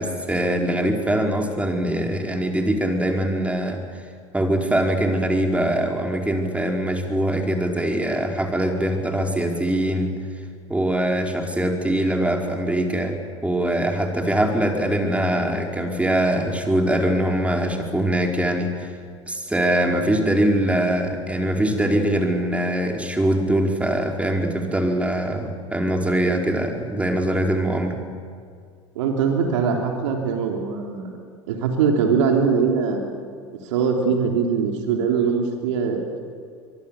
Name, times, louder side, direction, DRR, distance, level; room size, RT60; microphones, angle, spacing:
voice 1, 0.0-3.8 4.3-10.1 10.7-13.2 13.4-18.9 19.3-28.0, right 1 dB, 10° right, 2 dB, 4.6 m, -22 dB
voice 2, 29.0-31.1 31.5-33.0 33.6-36.2, right 6 dB, 70° right, 2 dB, 3.5 m, -22 dB
24.0 x 23.5 x 8.4 m, 2.2 s
hypercardioid pair, 80°, 16 cm